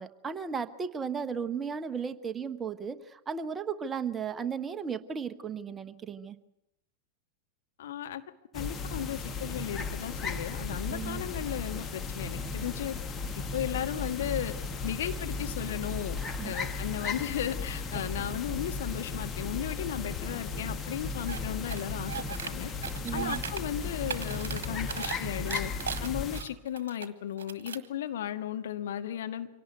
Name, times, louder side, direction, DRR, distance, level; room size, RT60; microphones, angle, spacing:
voice 1, 0.0-6.4 10.9-11.2 16.1-16.5 23.0-23.4, right 6 dB, 20° right, 12 dB, 1.1 m, -35 dB
voice 2, 7.8-8.2 8.5-12.9 13.5-14.5 14.8-16.2 16.4-22.7 23.1-25.7 26.0-29.5, left 10 dB, 60° left, 6 dB, 1.6 m, -35 dB
sound 1, 8.5-26.4, left 4 dB, 20° left, 1.8 m, -35 dB
sound 2, 21.3-21.4 21.7-22.5 22.8-23.6 23.9-25.2 25.5-27.1 27.4-27.9, right 7 dB, 65° right, 1.5 m, -37 dB
25.0 x 18.0 x 8.0 m, 0.88 s
figure-of-eight pair, 90°, 0 cm